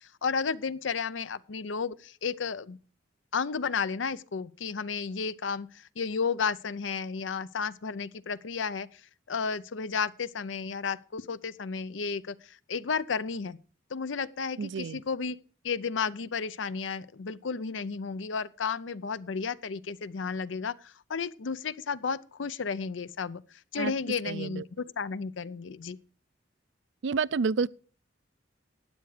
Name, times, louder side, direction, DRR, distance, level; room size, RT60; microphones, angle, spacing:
voice 1, 0.0-2.8 3.3-8.9 9.3-13.6 13.9-15.4 15.6-23.4 23.7-26.0, left 5 dB, 90° left, 0.6 m, -33 dB
voice 2, 14.6-15.0 23.7-23.9 24.2-24.6 27.0-27.7, right 5 dB, 70° right, 0.4 m, -29 dB
12.5 x 9.4 x 4.9 m
head